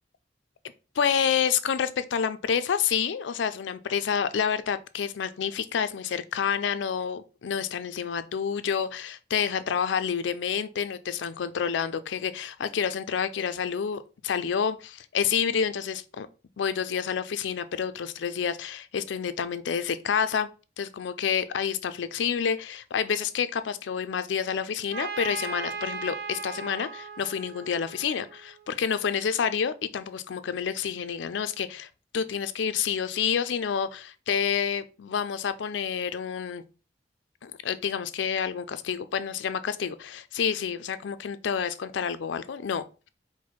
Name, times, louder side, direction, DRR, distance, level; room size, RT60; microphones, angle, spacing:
voice 1, 1.0-16.3 16.6-20.5 20.8-36.6 37.4-42.8, left 7 dB, 90° left, 0.4 m, -29 dB
Trumpet, 24.9-28.6, right 5 dB, 60° right, 0.6 m, -37 dB
4.6 x 2.1 x 4.1 m
head